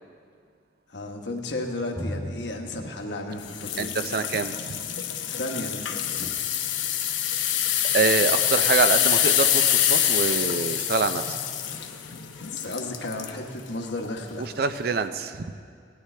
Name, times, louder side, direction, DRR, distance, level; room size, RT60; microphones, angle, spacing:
voice 1, 0.9-4.0 5.3-6.3 12.5-14.5, left 2 dB, 70° left, 2 dB, 1.2 m, -33 dB
Drum, 2.0-5.5, equal, 20° left, 1.2 m, -39 dB
sound 1, 3.5-13.4 13.9-14.1 14.7-14.8, left 10 dB, 90° left, 0.8 m, -25 dB
voice 2, 3.8-4.6 7.4-7.5 7.9-11.3 14.4-15.5, right 4 dB, 55° right, 10 dB, 0.5 m, -25 dB
18.5 x 11.5 x 3.3 m, 2.2 s
head